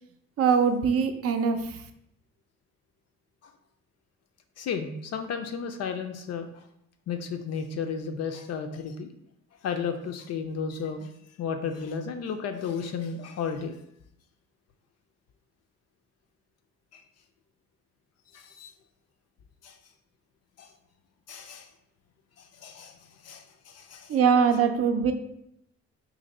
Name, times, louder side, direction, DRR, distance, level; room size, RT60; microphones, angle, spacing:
voice 1, 0.4-1.8 24.1-25.1, right 6 dB, 50° right, 7 dB, 0.5 m, -22 dB
voice 2, 4.6-6.6 7.1-9.1 9.6-11.1 11.4-13.8 16.9-17.0 18.3-18.7 19.6-19.8 20.6-20.7 21.3-21.7 22.4-24.2, left 6 dB, 55° left, 6 dB, 0.4 m, -33 dB
2.8 x 2.6 x 4.0 m, 0.77 s
cardioid pair, 90°, 30 cm